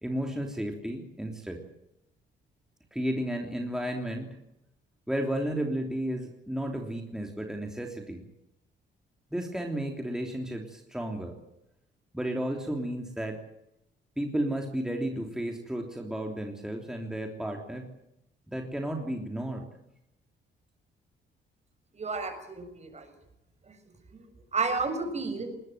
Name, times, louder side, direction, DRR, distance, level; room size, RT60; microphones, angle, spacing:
voice 1, 0.0-1.6 2.9-4.4 5.1-8.2 9.3-11.3 12.1-13.4 14.2-17.9 18.5-19.7, right 1 dB, 5° right, 2 dB, 3.3 m, -33 dB
voice 2, 22.0-23.1 24.5-25.5, right 4 dB, 35° right, 7 dB, 6.7 m, -31 dB
20.5 x 20.0 x 9.3 m, 0.85 s
cardioid pair, 90°, 20 cm